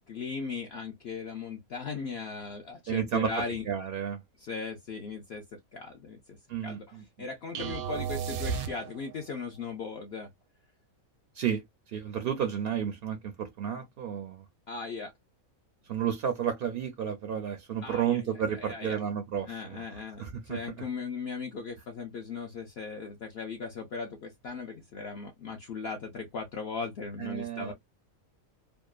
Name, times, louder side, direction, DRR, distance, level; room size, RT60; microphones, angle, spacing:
voice 1, 0.0-3.6 4.4-5.4 5.7-6.4 6.6-10.3 14.7-15.1 17.8-18.2 18.5-19.0 19.5-27.7, left 4 dB, 65° left, 0.6 m, -38 dB
voice 2, 2.9-3.3 3.7-4.2 6.5-7.0 11.3-14.4 15.8-19.8 20.2-20.8 27.2-27.7, right 8 dB, 70° right, 0.5 m, -32 dB
sound 1, 7.5-9.3, right 7 dB, 85° right, 1.0 m, -34 dB
2.7 x 2.2 x 2.3 m
omnidirectional pair, 1.5 m